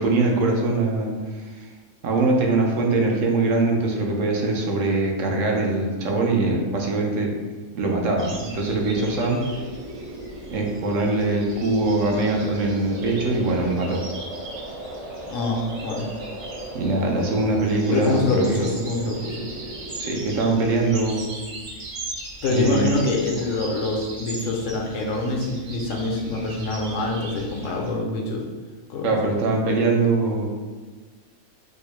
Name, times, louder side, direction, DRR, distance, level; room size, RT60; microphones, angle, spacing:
voice 1, 0.0-1.7 2.0-7.3 7.7-9.4 10.5-14.0 16.7-18.6 20.0-21.3 22.5-23.0 29.0-30.5, right 2 dB, 85° right, 0 dB, 1.0 m, -22 dB
sound 1, 8.2-27.9, right 2 dB, 50° right, 0.7 m, -39 dB
sound 2, 8.8-20.4, equal, 65° right, 1.3 m, -37 dB
voice 2, 15.3-16.1 17.9-19.5 22.4-28.4 28.9-29.1, left 2 dB, 80° left, 0 dB, 1.0 m, -25 dB
4.3 x 2.0 x 3.0 m, 1.3 s
omnidirectional pair, 1.3 m